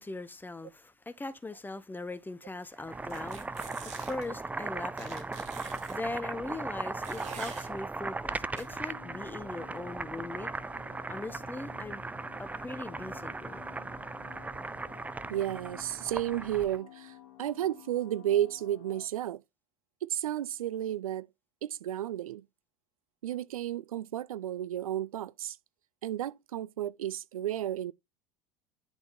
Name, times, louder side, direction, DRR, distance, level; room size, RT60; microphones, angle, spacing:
voice 1, 0.0-5.3 5.9-10.5 11.1-12.0 12.4-13.6, left 2 dB, 10° left, 1.3 m, -40 dB
Boiling, 2.7-16.8, right 3 dB, 10° right, 0.5 m, -38 dB
sound 1, 3.1-4.3 5.0-6.0 7.0-7.7 8.6-8.7, right 6 dB, 40° right, 3.5 m, -46 dB
sound 2, 8.3-19.1, left 11 dB, 65° left, 2.7 m, -53 dB
voice 2, 15.3-19.4 20.0-21.3 21.6-22.4 23.2-25.6 26.0-27.9, right 12 dB, 70° right, 0.6 m, -32 dB
10.5 x 6.1 x 2.7 m
figure-of-eight pair, 75°, 19 cm